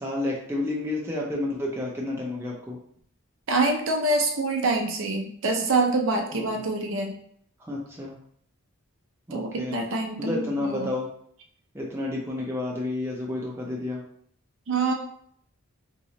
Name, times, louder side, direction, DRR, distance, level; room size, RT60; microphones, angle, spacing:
voice 1, 0.0-2.8 6.3-6.6 7.6-8.2 9.3-9.8 10.2-11.1 11.7-14.0, left 2 dB, 10° right, -3 dB, 0.5 m, -30 dB
voice 2, 3.5-7.1 9.3-10.9 14.7-14.9, right 2 dB, 60° right, 2 dB, 0.5 m, -25 dB
3.0 x 2.8 x 2.9 m, 0.64 s
head